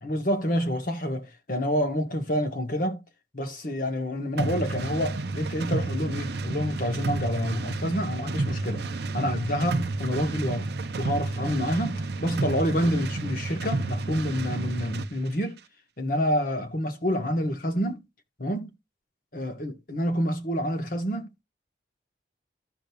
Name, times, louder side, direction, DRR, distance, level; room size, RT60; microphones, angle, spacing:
voice 1, 0.0-3.0 3.3-8.8 9.1-10.7 11.0-15.6 16.0-18.0 18.4-18.7 19.3-21.3, equal, 50° left, 1.3 m, -28 dB
sound 1, 4.4-15.1, right 2 dB, 60° right, 0.6 m, -31 dB
14.0 x 5.0 x 2.3 m
head